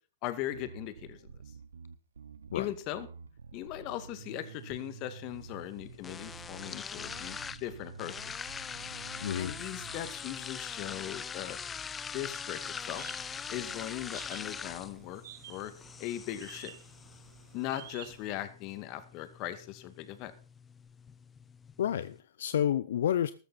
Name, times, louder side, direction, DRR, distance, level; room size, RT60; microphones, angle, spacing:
voice 1, 0.2-1.3 2.5-3.1 3.5-8.5 9.4-11.6 12.1-13.0 13.5-15.2 15.5-15.7 16.0-16.7 17.5-20.3, left 13 dB, 40° left, 11 dB, 2.1 m, -39 dB
Bass guitar, 0.5-10.1, right 6 dB, 85° right, 0.9 m, -50 dB
sound 1, 4.2-22.2, left 6 dB, 15° left, 0.7 m, -43 dB
voice 2, 9.2-9.5 21.8-23.3, left 10 dB, 70° left, 15 dB, 0.7 m, -29 dB
sound 2, 12.9-18.3, right 12 dB, 65° right, 1.4 m, -52 dB
13.5 x 13.5 x 4.3 m, 0.36 s
hypercardioid pair, 120°, 0 cm